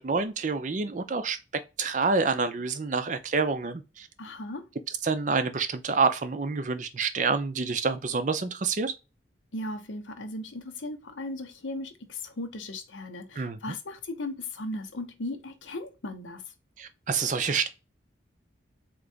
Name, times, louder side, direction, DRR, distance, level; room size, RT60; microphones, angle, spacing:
voice 1, 0.0-1.4 1.8-4.1 5.0-8.9 13.4-13.6 16.8-17.7, right 4 dB, 40° right, 0.4 m, -27 dB
voice 2, 4.2-4.7 9.5-16.4, left 2 dB, 85° left, 0.8 m, -37 dB
3.8 x 2.9 x 3.4 m
head